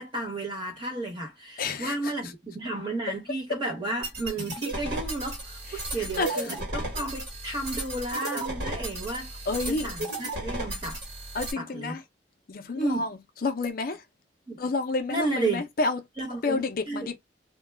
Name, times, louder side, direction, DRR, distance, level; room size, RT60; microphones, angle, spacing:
voice 1, 0.0-11.0 11.6-12.0 12.8-13.1 14.5-14.6 15.1-15.6 16.2-17.1, right 2 dB, 25° right, 1.1 m, -33 dB
voice 2, 1.6-2.1 5.8-5.9 6.2-6.6 9.5-9.9 11.3-12.0 12.5-14.0 14.6-16.0 16.4-17.2, left 3 dB, 55° left, 0.5 m, -29 dB
sound 1, 4.0-11.5, right 1 dB, 60° right, 1.3 m, -34 dB
2.2 x 2.2 x 3.2 m
head